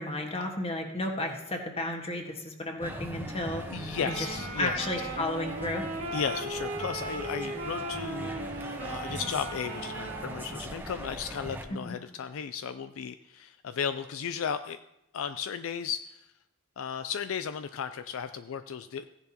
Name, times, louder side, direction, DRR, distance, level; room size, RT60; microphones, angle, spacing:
voice 1, 0.0-3.6 4.0-4.3 4.6-5.9 11.9-12.0, left 1 dB, 30° left, 2 dB, 1.5 m, -33 dB
sound 1, 2.8-11.6, right 1 dB, 10° right, 1.0 m, -40 dB
voice 2, 3.7-4.9 6.1-14.8 15.1-16.2 16.8-19.1, left 7 dB, 65° left, 11 dB, 0.4 m, -35 dB
Wind instrument woodwind instrument, 3.9-10.9, right 2 dB, 70° right, 2.2 m, -38 dB
15.5 x 10.5 x 2.9 m, 0.87 s
head